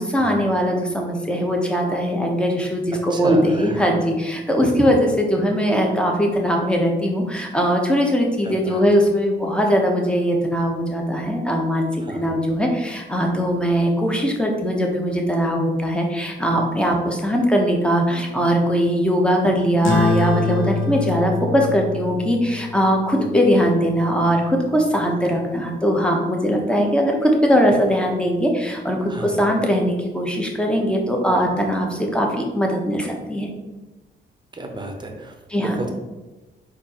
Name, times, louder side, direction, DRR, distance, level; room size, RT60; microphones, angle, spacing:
voice 1, 0.0-33.5 35.5-35.8, equal, 5° left, 1 dB, 0.9 m, -20 dB
voice 2, 3.1-3.8 8.4-8.8 12.0-12.3 23.1-23.5 29.0-29.4 34.5-35.9, right 2 dB, 25° right, 4 dB, 0.8 m, -32 dB
sound 1, 19.8-24.7, left 3 dB, 85° left, 0.8 m, -26 dB
4.3 x 2.6 x 4.2 m, 1.1 s
cardioid pair, 85°, 19 cm